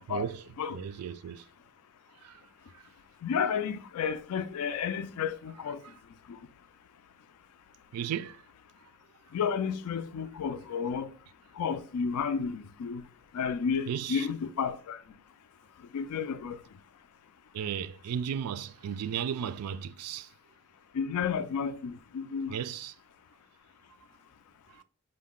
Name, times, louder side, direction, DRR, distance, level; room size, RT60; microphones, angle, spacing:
voice 1, 0.1-1.4 2.2-2.4 2.7-2.8 5.8-5.9 7.9-8.4 13.9-14.3 17.5-20.3 22.5-22.9 24.8-24.9, right 8 dB, 90° right, 0.3 m, -35 dB
voice 2, 3.2-5.8 6.3-6.4 9.3-11.1 11.6-13.0 13.3-15.0 15.9-16.6 20.9-22.6, left 6 dB, 80° left, 0.4 m, -32 dB
5.2 x 2.1 x 3.6 m
head